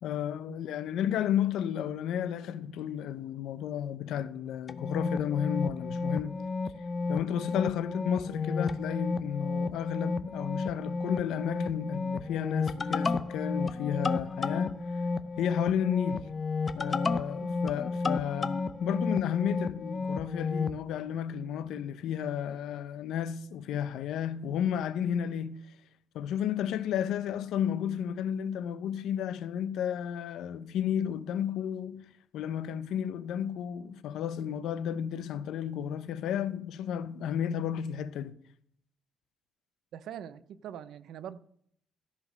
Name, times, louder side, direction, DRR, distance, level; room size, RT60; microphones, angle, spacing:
voice 1, 0.0-6.4 7.1-14.8 15.4-16.3 16.8-25.7 26.1-38.3, left 9 dB, 90° left, 0.7 m, -32 dB
sound 1, 4.7-20.8, left 3 dB, 25° left, 0.5 m, -32 dB
voice 2, 39.9-41.4, right 9 dB, 70° right, 0.6 m, -43 dB
14.0 x 5.2 x 6.4 m
cardioid pair, 175°, 0 cm